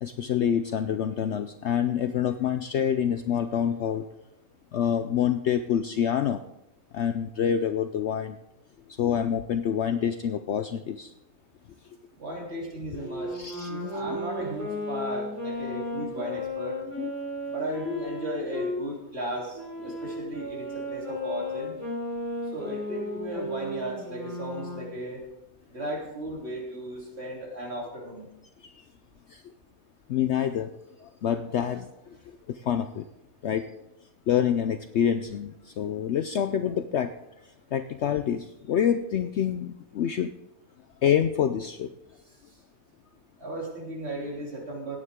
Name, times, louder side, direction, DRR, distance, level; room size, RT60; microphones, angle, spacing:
voice 1, 0.0-4.0 4.7-6.4 6.9-8.4 8.9-11.1 13.3-13.7 17.0-17.1 19.8-20.0 28.6-28.7 29.3-29.4 30.1-30.7 31.0-32.2 32.5-33.0 33.4-33.7 34.3-37.1 37.7-40.3 41.0-41.9, left 9 dB, 65° left, 9 dB, 0.7 m, -27 dB
voice 2, 12.2-13.3 13.7-16.8 17.5-21.7 22.5-25.2 25.7-28.3 43.4-45.0, right 1 dB, 45° right, -3 dB, 3.5 m, -35 dB
Wind instrument woodwind instrument, 13.0-18.8 19.5-25.0, left 1 dB, 10° right, 4.3 m, -34 dB
17.0 x 9.6 x 3.7 m, 0.87 s
omnidirectional pair, 1.5 m